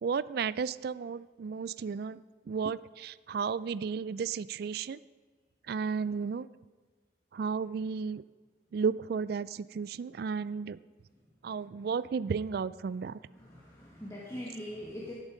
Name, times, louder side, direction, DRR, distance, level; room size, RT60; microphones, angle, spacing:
voice 1, 0.0-2.2 2.5-5.0 5.7-6.5 7.3-8.2 8.7-10.8 11.4-13.2, right 5 dB, 55° right, 18 dB, 0.3 m, -33 dB
voice 2, 13.3-15.1, left 1 dB, 15° left, -5 dB, 1.6 m, -42 dB
12.5 x 10.5 x 5.1 m, 1.4 s
head